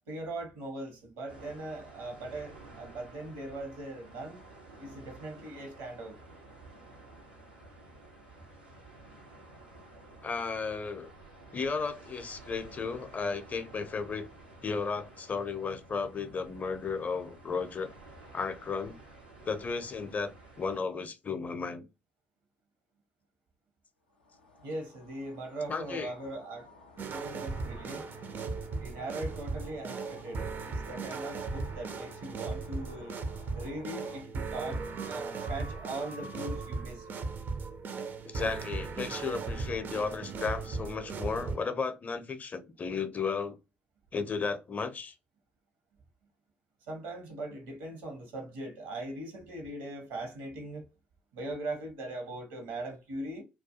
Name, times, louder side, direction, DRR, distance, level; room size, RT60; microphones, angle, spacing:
voice 1, 0.1-4.4 4.8-6.1 24.6-26.7 27.1-28.1 28.8-33.2 33.5-37.2 46.9-50.9 51.3-53.4, right 2 dB, 70° right, 0.9 m, -40 dB
sound 1, 1.3-20.8, right 2 dB, 90° right, 0.6 m, -52 dB
voice 2, 10.2-11.1 11.5-14.3 14.6-17.9 18.3-19.0 19.4-21.9 25.7-26.1 38.2-43.6 44.1-45.1, left 5 dB, 35° left, 0.5 m, -34 dB
sound 2, 24.1-34.2, left 3 dB, 90° left, 0.4 m, -53 dB
sound 3, 27.0-41.6, right 4 dB, 40° right, 0.4 m, -37 dB
2.3 x 2.2 x 2.7 m
figure-of-eight pair, 45°, 5 cm